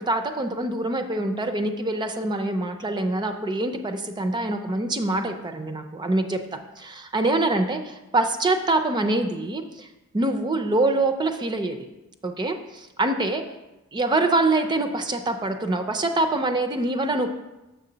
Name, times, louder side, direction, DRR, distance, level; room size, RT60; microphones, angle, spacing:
voice 1, 0.0-9.9 10.1-11.9 12.2-13.4 13.9-17.3, right 2 dB, 20° right, 7 dB, 0.4 m, -25 dB
6.7 x 6.6 x 3.9 m, 1.0 s
head